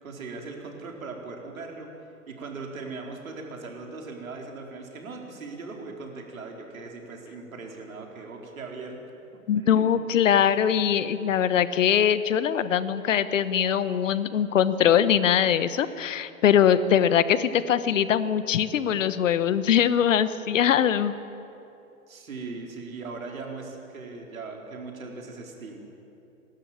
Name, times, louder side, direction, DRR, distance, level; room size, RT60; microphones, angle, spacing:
voice 1, 0.0-1.9 2.3-9.0 9.6-9.9 22.1-25.9, right 3 dB, 75° right, 1 dB, 4.4 m, -39 dB
voice 2, 9.5-21.1, left 9 dB, 65° left, 14 dB, 1.2 m, -22 dB
28.5 x 13.0 x 8.8 m, 2.9 s
hypercardioid pair, 125°, 41 cm